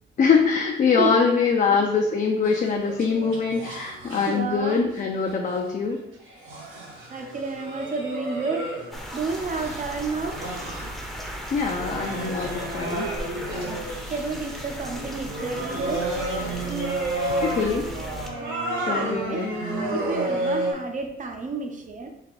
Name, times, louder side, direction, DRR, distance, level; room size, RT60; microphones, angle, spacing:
voice 1, 0.2-6.0 11.5-13.1 17.4-17.9 18.8-19.5, left 5 dB, 40° left, 1 dB, 0.5 m, -23 dB
sound 1, 2.4-4.4 4.7-5.6 6.2-11.1 11.6-20.7, right 1 dB, 75° right, 1.1 m, -31 dB
voice 2, 4.3-4.8 7.1-8.7 9.1-10.4 14.1-16.0 18.9-19.5 19.9-22.1, right 4 dB, 40° right, 4 dB, 0.6 m, -30 dB
fantastic rain, 8.9-18.3, equal, ahead, 0.7 m, -37 dB
3.4 x 2.3 x 4.1 m, 0.81 s
cardioid pair, 90°, 20 cm